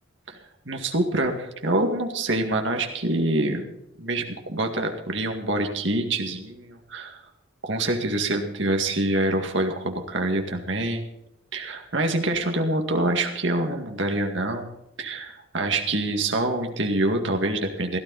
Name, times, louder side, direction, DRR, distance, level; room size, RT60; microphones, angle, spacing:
voice 1, 0.7-3.6 4.0-7.2 7.6-11.1 11.5-18.0, right 2 dB, 60° right, 4 dB, 2.1 m, -26 dB
16.5 x 12.5 x 4.2 m, 0.87 s
head